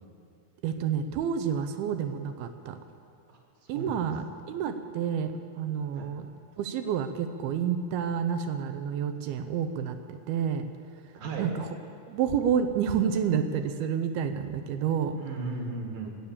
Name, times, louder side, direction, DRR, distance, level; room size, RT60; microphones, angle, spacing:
voice 1, 0.6-2.8 3.7-6.3 6.6-10.7 11.4-11.7 12.1-15.2, right 7 dB, 80° right, 8 dB, 2.4 m, -29 dB
voice 2, 3.3-4.0 5.9-6.1 11.1-11.5 15.2-16.1, right 3 dB, 60° right, 1 dB, 3.0 m, -36 dB
21.0 x 8.6 x 7.2 m, 2.5 s
omnidirectional pair, 4.8 m